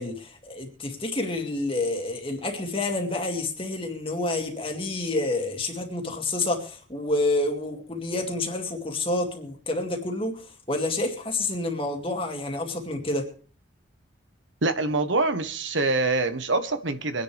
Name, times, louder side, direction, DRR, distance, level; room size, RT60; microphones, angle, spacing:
voice 1, 0.0-13.3, left 2 dB, 25° left, 2.4 m, -28 dB
voice 2, 14.6-17.2, right 3 dB, 70° right, 1.2 m, -25 dB
24.5 x 10.5 x 3.4 m
head